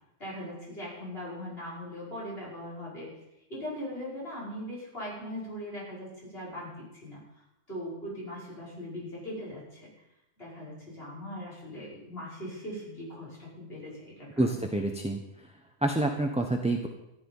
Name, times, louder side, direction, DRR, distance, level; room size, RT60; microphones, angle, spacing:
voice 1, 0.2-3.1 3.5-7.2 7.7-9.9 10.4-14.6, equal, 40° left, -6 dB, 6.2 m, -40 dB
voice 2, 14.4-15.2 15.8-16.9, right 2 dB, 5° right, 2 dB, 0.9 m, -27 dB
14.0 x 12.0 x 5.6 m, 0.89 s
omnidirectional pair, 1.5 m